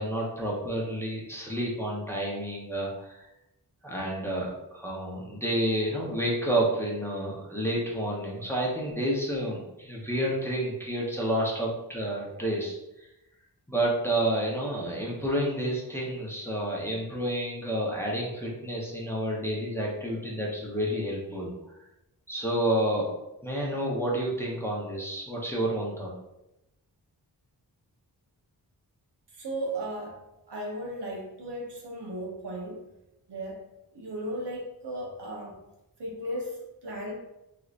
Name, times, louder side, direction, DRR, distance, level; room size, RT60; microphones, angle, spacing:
voice 1, 0.0-3.3 3.8-13.1 13.7-21.5 22.3-23.1 23.4-26.1, right 1 dB, 5° left, -4 dB, 0.8 m, -30 dB
voice 2, 29.3-30.2 30.5-32.8 33.3-33.6 33.9-35.6 36.0-37.1, right 1 dB, 75° right, -3 dB, 1.1 m, -35 dB
3.6 x 3.2 x 2.5 m, 0.91 s
wide cardioid pair, 80°, 41 cm